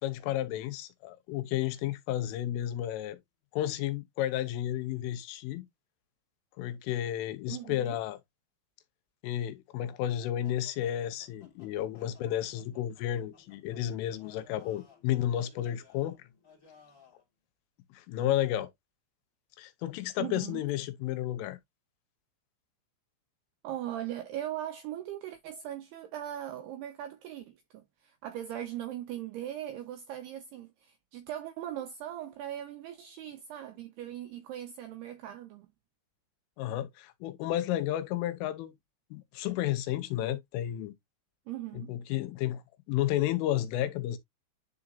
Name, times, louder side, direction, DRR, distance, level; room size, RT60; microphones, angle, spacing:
voice 1, 0.0-3.2 3.5-5.7 6.6-8.2 9.2-16.3 17.9-18.7 19.6-21.6 36.6-38.7 39.1-40.9 41.7-44.2, left 12 dB, 90° left, 3.3 m, -32 dB
voice 2, 7.5-8.0 20.2-20.6 23.6-35.7 41.5-41.9, right 12 dB, 80° right, 2.3 m, -39 dB
sound 1, 10.4-17.2, left 5 dB, 25° left, 2.0 m, -60 dB
10.5 x 4.0 x 2.4 m
omnidirectional pair, 5.7 m